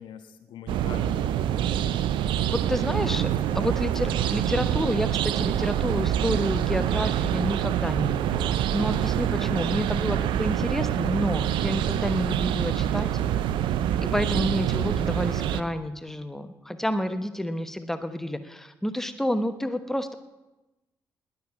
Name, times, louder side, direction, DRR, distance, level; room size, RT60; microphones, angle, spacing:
voice 1, 0.0-2.5 2.9-3.9 9.7-10.0, left 7 dB, 60° left, 8 dB, 1.3 m, -45 dB
sound 1, 0.7-15.6, right 10 dB, 60° right, 0.6 m, -26 dB
voice 2, 2.5-3.3 3.5-13.1 14.0-20.1, equal, 5° left, 10 dB, 1.1 m, -29 dB
20.0 x 7.1 x 7.4 m, 1.0 s
figure-of-eight pair, 40°, 9 cm